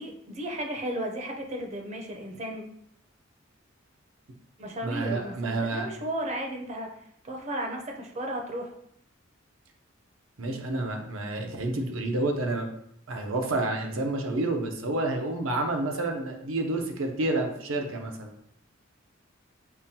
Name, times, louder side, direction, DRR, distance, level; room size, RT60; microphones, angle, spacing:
voice 1, 0.0-2.6 4.6-6.9 7.2-8.7, right 1 dB, 35° right, 2 dB, 0.5 m, -34 dB
voice 2, 4.8-5.9 10.4-12.7 13.1-18.3, right 2 dB, 85° right, 3 dB, 0.7 m, -29 dB
5.6 x 2.2 x 2.7 m, 0.69 s
head